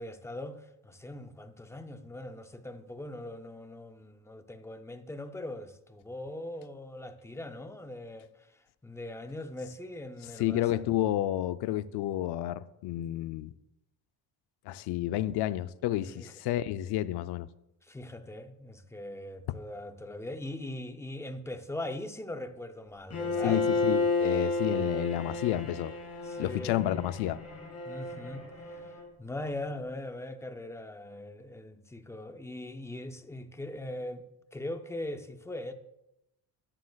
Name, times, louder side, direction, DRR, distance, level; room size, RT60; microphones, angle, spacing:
voice 1, 0.0-8.3 8.8-10.8 16.1-16.3 17.8-23.6 26.2-26.9 27.8-28.9 29.2-34.2 34.5-35.7, left 1 dB, 5° left, 0.3 m, -40 dB
voice 2, 10.4-13.5 14.7-17.5 23.4-25.9 26.4-27.4, left 13 dB, 65° left, 0.5 m, -30 dB
Bowed string instrument, 23.1-29.1, left 3 dB, 35° left, 2.3 m, -32 dB
13.0 x 11.5 x 2.3 m
cardioid pair, 150°, 43 cm